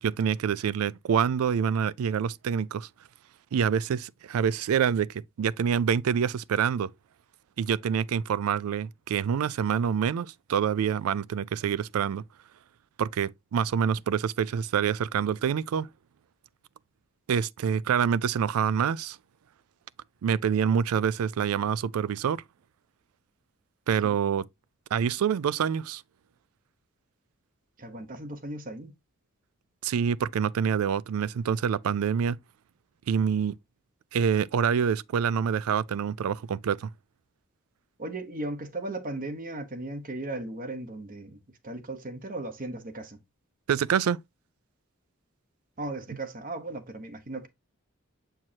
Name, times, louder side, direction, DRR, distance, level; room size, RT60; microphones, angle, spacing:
voice 1, 0.0-2.9 3.5-6.9 7.6-12.2 13.0-15.9 17.3-19.2 20.2-22.4 23.9-24.4 24.9-26.0 29.8-32.4 33.1-33.5 34.1-36.9 43.7-44.2, right 7 dB, 85° right, 0.4 m, -26 dB
voice 2, 27.8-28.9 38.0-43.2 45.8-47.5, right 2 dB, 40° right, 1.0 m, -36 dB
7.4 x 4.6 x 2.8 m
head